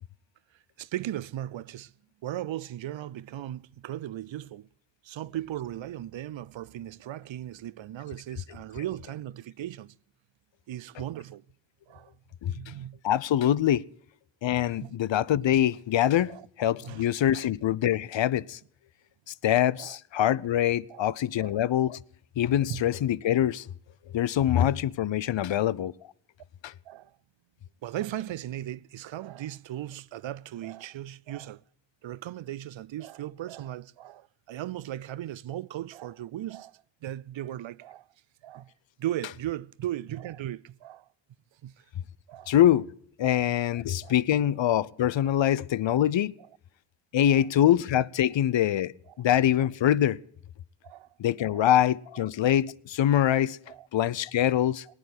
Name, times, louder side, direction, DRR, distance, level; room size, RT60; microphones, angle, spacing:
voice 1, 0.8-1.9 2.2-4.7 5.0-10.0 10.7-11.4 11.9-12.2 12.5-13.0 14.8-14.9 16.3-16.5 16.8-17.1 17.3-17.4 19.8-20.0 20.9-21.1 21.4-21.5 22.7-22.8 25.5-25.6 26.9-27.2 27.8-31.6 32.0-38.1 38.4-38.7 39.0-41.1 41.6-41.8 42.3-42.5 43.2-43.4 44.0-44.1 47.3-47.4 50.8-51.1 51.5-51.7 53.7-53.9, right 12 dB, 85° right, 0.6 m, -37 dB
voice 2, 12.4-12.7 13.0-13.9 14.4-18.6 19.3-22.0 22.4-23.7 24.1-25.9 26.6-26.7 42.5-42.9 43.2-46.3 47.1-50.2 51.2-53.6 53.9-54.9, left 11 dB, 75° left, 0.6 m, -24 dB
18.5 x 9.0 x 8.0 m
cardioid pair, 45°, 45 cm